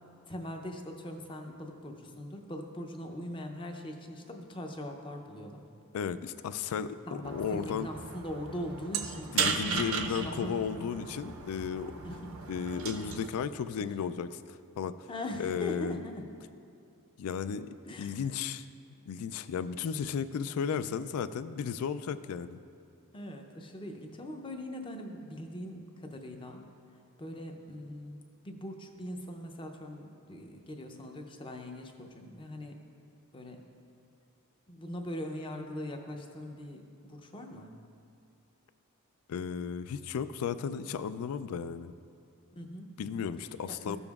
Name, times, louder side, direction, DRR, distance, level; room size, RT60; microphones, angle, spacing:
voice 1, 0.3-5.6 7.1-10.9 12.0-12.5 13.8-14.0 15.1-16.2 17.8-18.2 23.1-26.6 27.2-32.8 33.3-33.6 34.7-37.7 42.5-43.3 43.7-44.0, left 1 dB, 20° left, 4 dB, 0.5 m, -41 dB
voice 2, 5.9-7.0 7.2-7.9 9.3-12.0 12.5-15.1 15.4-16.0 17.2-18.7 19.1-22.6 39.3-41.9 43.0-44.0, left 7 dB, 75° left, 14 dB, 0.3 m, -34 dB
sound 1, 7.2-13.3, right 5 dB, 65° right, 0.5 m, -36 dB
13.5 x 6.9 x 2.4 m, 2.5 s
head